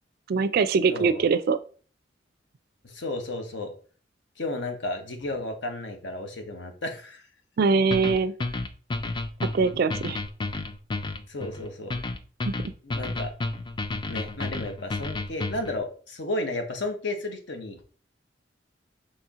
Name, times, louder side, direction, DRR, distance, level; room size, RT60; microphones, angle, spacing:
voice 1, 0.3-1.6 7.6-8.3 9.5-10.2 12.5-12.7, right 4 dB, 55° right, 13 dB, 0.4 m, -23 dB
voice 2, 0.9-1.2 2.8-3.7 4.4-7.3 11.3-11.9 12.8-13.3 14.1-17.9, left 2 dB, 70° left, 5 dB, 0.9 m, -33 dB
sound 1, 7.9-15.8, left 2 dB, 25° left, 0.4 m, -31 dB
4.3 x 3.0 x 3.6 m, 0.41 s
head